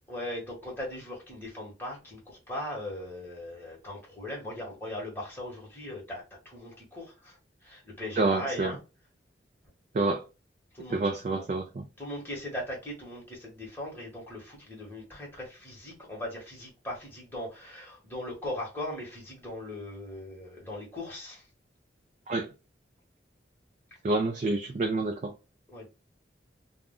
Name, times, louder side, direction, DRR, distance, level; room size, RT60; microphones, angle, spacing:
voice 1, 0.1-8.8 10.7-11.4 12.0-21.5 24.1-24.2 25.7-25.9, left 1 dB, 10° left, 1.1 m, -39 dB
voice 2, 8.2-8.7 9.9-10.2 10.9-11.8 22.3-22.5 24.0-25.3, right 2 dB, 40° right, 0.3 m, -28 dB
2.4 x 2.1 x 3.5 m
head